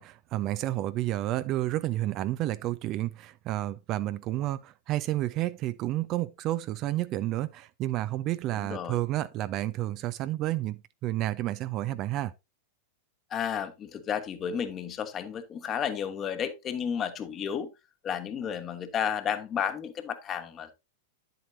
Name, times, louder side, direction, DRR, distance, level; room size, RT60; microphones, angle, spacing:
voice 1, 0.0-12.3, right 15 dB, 35° right, 0.4 m, -30 dB
voice 2, 8.6-9.0 13.3-17.7 18.0-20.7, left 8 dB, 25° left, 1.2 m, -32 dB
10.0 x 7.8 x 2.7 m
figure-of-eight pair, 95°, 0 cm